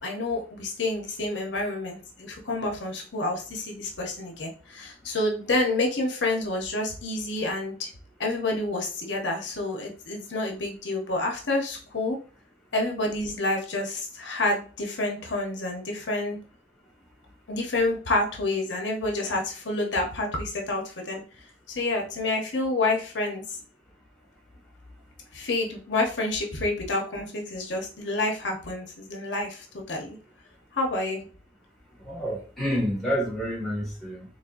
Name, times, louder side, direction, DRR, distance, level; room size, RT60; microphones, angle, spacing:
voice 1, 0.0-7.9 8.2-12.2 12.7-16.4 17.5-21.2 21.7-23.6 25.3-30.2 30.7-31.2, left 2 dB, 90° left, 1 dB, 0.9 m, -28 dB
voice 2, 32.0-34.3, equal, ahead, -5 dB, 1.9 m, -28 dB
3.8 x 3.7 x 2.6 m, 0.37 s
head